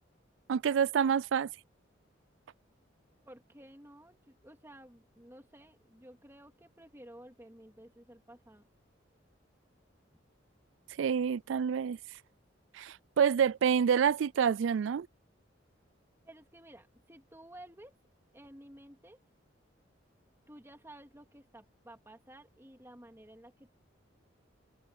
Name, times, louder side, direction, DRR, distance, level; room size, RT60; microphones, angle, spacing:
voice 1, 0.5-1.5 11.0-12.0 12.7-15.1, right 7 dB, 80° right, 0.3 m, -27 dB
voice 2, 3.2-8.7 16.3-18.0 18.3-19.2 20.5-23.7, right 1 dB, 15° right, 2.6 m, -54 dB
head